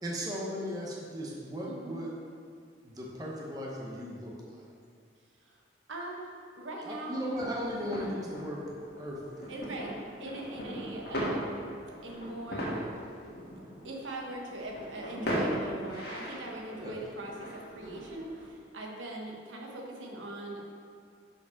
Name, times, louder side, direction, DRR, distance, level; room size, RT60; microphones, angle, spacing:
voice 1, 0.0-2.1 2.8-4.6 6.8-9.5 16.8-17.0, equal, 20° right, -4 dB, 0.9 m, -37 dB
voice 2, 1.7-2.0 5.4-5.6 5.9-7.2 9.5-11.7 12.0-12.9 13.8-20.6, right 1 dB, 85° right, -1 dB, 1.2 m, -41 dB
sound 1, 7.3-18.5, equal, 55° left, 1.6 m, -38 dB
6.0 x 5.2 x 5.8 m, 2.2 s
head